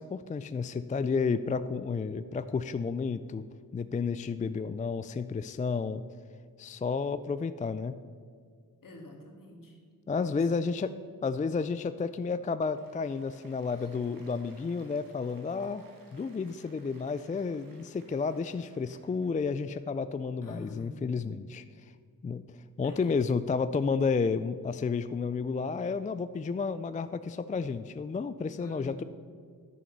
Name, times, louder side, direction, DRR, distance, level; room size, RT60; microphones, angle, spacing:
voice 1, 0.0-3.4 3.7-6.0 6.6-7.9 10.1-10.9 11.2-15.8 16.1-21.6 22.2-29.0, left 5 dB, 20° left, 13 dB, 0.3 m, -31 dB
voice 2, 8.8-9.8 10.3-10.9 13.8-13.9 20.4-21.0 22.8-23.1 28.6-29.0, left 1 dB, 65° left, 2 dB, 2.0 m, -48 dB
Applause, 12.5-19.3, right 3 dB, 65° right, 1.9 m, -60 dB
9.3 x 6.9 x 6.6 m, 2.1 s
cardioid pair, 65°, 36 cm